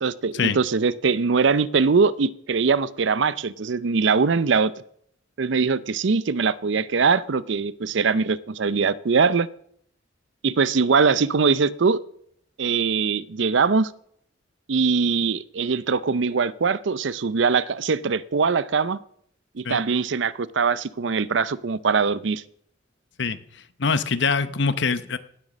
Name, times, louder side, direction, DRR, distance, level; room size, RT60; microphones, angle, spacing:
voice 1, 0.0-4.7 5.4-9.5 10.4-12.0 12.6-13.9 14.7-19.0 19.6-22.4, right 5 dB, 65° right, 18 dB, 0.5 m, -22 dB
voice 2, 23.8-25.2, left 5 dB, 60° left, 13 dB, 0.9 m, -23 dB
17.5 x 8.2 x 6.2 m, 0.68 s
head